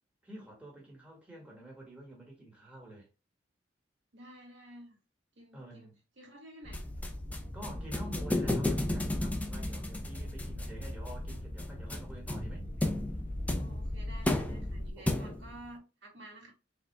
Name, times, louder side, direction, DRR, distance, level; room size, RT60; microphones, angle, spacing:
voice 1, 0.2-3.1 5.5-5.9 7.5-12.7 14.9-15.3, right 1 dB, 5° right, 1.7 m, -49 dB
voice 2, 4.1-5.0 5.4-5.9 6.2-6.9 13.6-16.5, right 1 dB, 75° right, 2.1 m, -51 dB
sound 1, 6.6-14.9, left 1 dB, 45° left, 0.8 m, -40 dB
sound 2, 6.7-15.6, left 1 dB, 10° left, 0.6 m, -34 dB
4.7 x 3.8 x 2.2 m
head